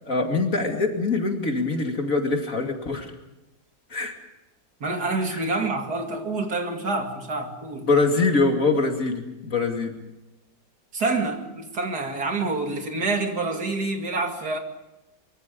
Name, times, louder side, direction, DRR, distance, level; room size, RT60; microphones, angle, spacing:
voice 1, 0.1-3.1 3.9-4.2 5.3-5.4 7.8-9.9, left 3 dB, 45° left, 3 dB, 2.9 m, -23 dB
voice 2, 4.8-7.9 10.9-14.6, right 3 dB, 60° right, 4 dB, 2.8 m, -27 dB
24.0 x 23.5 x 5.3 m, 0.97 s
omnidirectional pair, 2.0 m